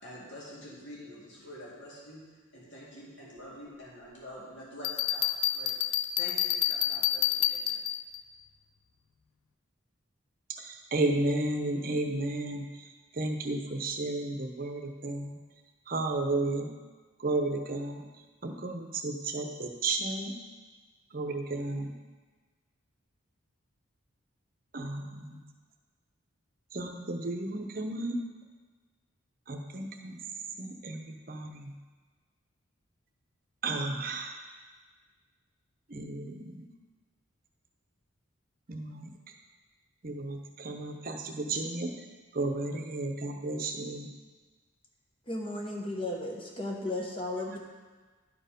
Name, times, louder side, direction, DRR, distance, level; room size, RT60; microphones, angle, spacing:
voice 1, 0.0-2.2 2.5-5.8 6.2-7.8, equal, 60° left, -6 dB, 2.4 m, -47 dB
Bell, 4.8-8.2, left 12 dB, 80° left, 0.4 m, -28 dB
voice 2, 10.5-12.9 13.1-15.4 15.9-16.7 17.2-18.0 18.4-20.3 21.1-21.9 24.7-25.4 26.7-28.2 29.5-30.2 30.6-31.7 33.6-34.4 35.9-36.7 38.7-39.1 40.0-41.9 42.3-44.1, right 2 dB, 45° right, 3 dB, 0.8 m, -33 dB
voice 3, 45.3-47.6, left 1 dB, 25° left, 0 dB, 1.0 m, -35 dB
11.5 x 4.5 x 5.1 m, 1.4 s
head